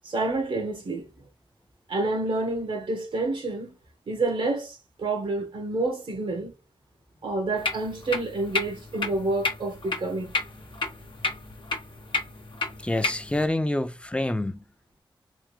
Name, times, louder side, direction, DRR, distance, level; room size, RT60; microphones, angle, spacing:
voice 1, 0.0-1.1 1.9-3.7 4.1-6.5 7.2-10.3, right 2 dB, 80° right, 1.3 m, -28 dB
sound 1, 7.6-13.4, left 3 dB, 65° left, 1.0 m, -32 dB
voice 2, 12.8-14.6, left 1 dB, 10° left, 0.5 m, -27 dB
3.6 x 2.5 x 3.1 m
cardioid pair, 50°, 9 cm